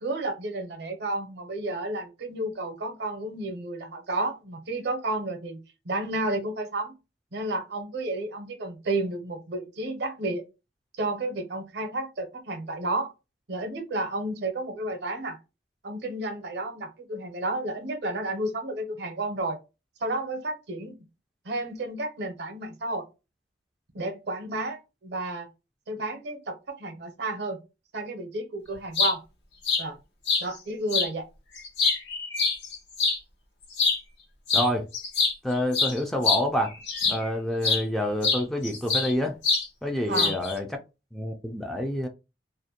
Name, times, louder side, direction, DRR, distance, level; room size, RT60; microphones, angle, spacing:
voice 1, 0.0-5.6 5.8-6.9 7.3-10.4 11.0-13.1 13.5-15.4 15.8-19.6 20.0-21.0 21.4-23.1 23.9-25.5 25.9-27.6 27.9-29.2 29.8-30.0 30.4-31.3 40.1-40.4, right 2 dB, 65° right, 0.6 m, -31 dB
sound 1, 28.7-29.1 29.6-29.8 30.3-30.4 30.9-31.1 31.6-33.2 33.7-34.0 34.5-34.7 34.9-37.3 37.6-37.8 38.2-39.1 39.4-39.7 40.1-40.5, left 4 dB, 80° left, 0.8 m, -24 dB
voice 2, 34.5-34.9 35.4-36.7 37.1-39.4 39.8-40.7 41.1-42.1, left 1 dB, ahead, 0.3 m, -27 dB
2.5 x 2.1 x 2.7 m
head